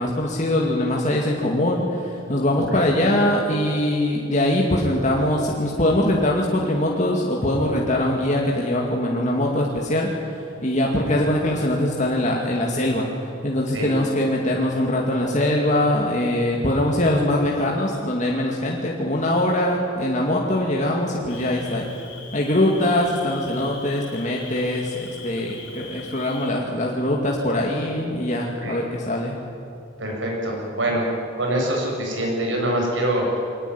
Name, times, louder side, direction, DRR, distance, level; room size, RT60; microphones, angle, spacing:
voice 1, 0.0-21.9 22.3-29.4, left 1 dB, 40° left, -1 dB, 2.4 m, -22 dB
Cricket, 21.3-26.5, left 5 dB, 90° left, 5.1 m, -42 dB
voice 2, 30.0-31.0 31.4-33.4, right 1 dB, 80° right, -1 dB, 7.7 m, -24 dB
23.5 x 18.0 x 10.0 m, 2.7 s
head